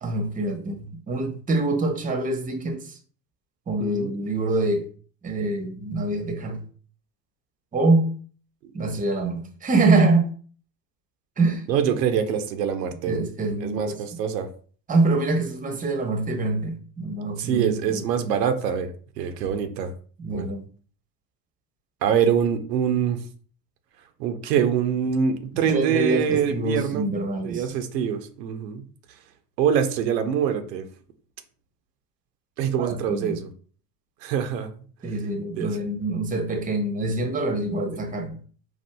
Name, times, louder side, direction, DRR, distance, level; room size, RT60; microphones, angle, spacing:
voice 1, 0.0-3.0 3.7-4.9 5.2-6.6 7.7-8.1 8.7-10.3 11.4-11.6 13.1-14.0 14.9-18.0 20.2-20.6 25.7-27.6 32.8-33.4 35.0-38.4, right 2 dB, 15° right, 0.7 m, -25 dB
voice 2, 3.8-4.2 11.7-13.2 13.6-14.5 17.4-18.9 19.2-19.9 20.3-20.5 22.0-23.2 24.2-27.1 27.4-28.9 29.6-30.8 32.6-33.5 34.2-34.7 35.5-35.8 37.9-38.0, right 8 dB, 85° right, 0.6 m, -24 dB
4.3 x 2.4 x 2.2 m
hypercardioid pair, 75°, 48 cm